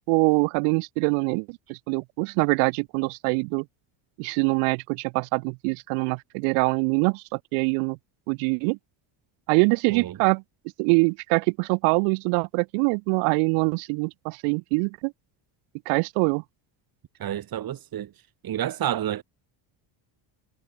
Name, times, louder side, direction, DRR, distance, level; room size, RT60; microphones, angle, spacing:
voice 1, 0.1-3.7 4.2-8.0 8.3-8.8 9.5-10.4 10.8-15.1 15.9-16.4, right 40 dB or more, 90° right, 3.6 m, -24 dB
voice 2, 17.2-18.1 18.4-19.2, right 11 dB, 45° right, 3.3 m, -29 dB
cardioid pair, 120°, 49 cm